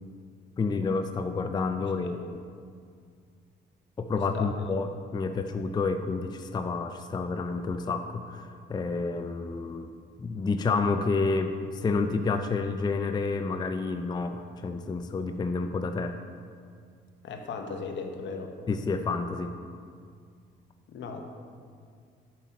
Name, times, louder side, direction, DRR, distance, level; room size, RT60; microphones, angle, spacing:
voice 1, 0.6-2.4 4.0-9.9 10.2-16.2 18.7-19.5, left 4 dB, 20° left, 7 dB, 0.4 m, -29 dB
voice 2, 1.8-2.1 4.3-4.5 17.2-18.5 20.9-21.2, left 4 dB, 70° left, 4 dB, 0.9 m, -37 dB
7.6 x 6.0 x 4.1 m, 2.2 s
cardioid pair, 90°, 20 cm